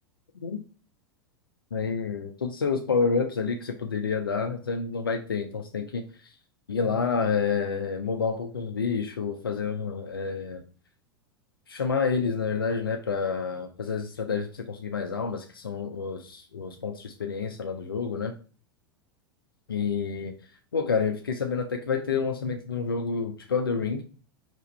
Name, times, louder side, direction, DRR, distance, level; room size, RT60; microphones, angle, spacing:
voice 1, 1.7-6.0 6.7-10.6 11.7-18.3 19.7-20.3 20.7-24.0, left 5 dB, 80° left, 5 dB, 0.5 m, -28 dB
3.5 x 2.9 x 4.2 m, 0.39 s
figure-of-eight pair, 90°, 12 cm